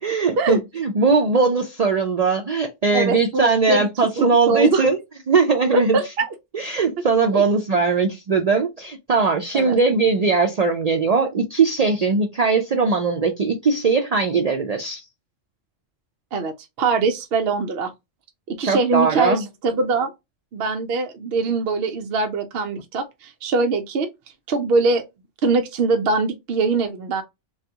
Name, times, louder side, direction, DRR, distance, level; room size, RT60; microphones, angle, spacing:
voice 1, 0.0-5.0 5.3-6.0 6.5-15.0 18.6-19.4, right 4 dB, 90° right, 0.3 m, -20 dB
voice 2, 2.9-3.9 4.2-4.9 5.7-6.3 7.3-7.4 9.5-9.8 16.3-17.9 18.5-20.1 20.5-24.1 24.5-25.0 25.4-27.2, right 3 dB, 60° right, 0.7 m, -22 dB
3.5 x 2.3 x 2.7 m
omnidirectional pair, 1.3 m